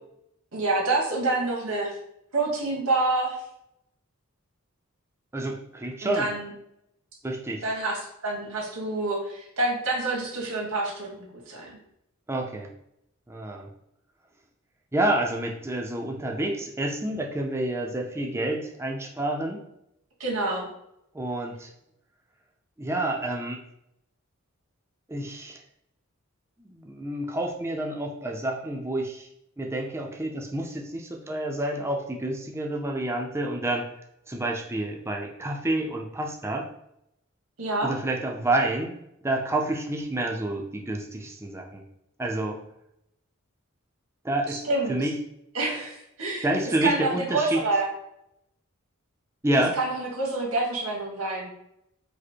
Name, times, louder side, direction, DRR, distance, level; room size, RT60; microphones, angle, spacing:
voice 1, 0.5-1.9 2.3-3.4 6.0-6.5 7.6-11.8 20.2-20.7 37.6-37.9 44.5-45.1 45.5-46.5 46.8-47.9 49.8-51.5, right 2 dB, 85° right, -2 dB, 1.6 m, -27 dB
voice 2, 5.3-6.3 7.2-7.6 12.3-12.7 13.3-13.7 14.9-19.6 21.1-21.7 22.8-23.6 25.1-25.6 26.6-29.3 29.6-33.8 34.3-36.6 37.8-38.9 39.2-41.8 42.2-42.6 44.2-44.6 44.9-45.1 46.4-47.6 49.4-49.8, right 1 dB, 10° right, 0 dB, 0.5 m, -28 dB
5.0 x 2.1 x 4.4 m, 0.79 s
head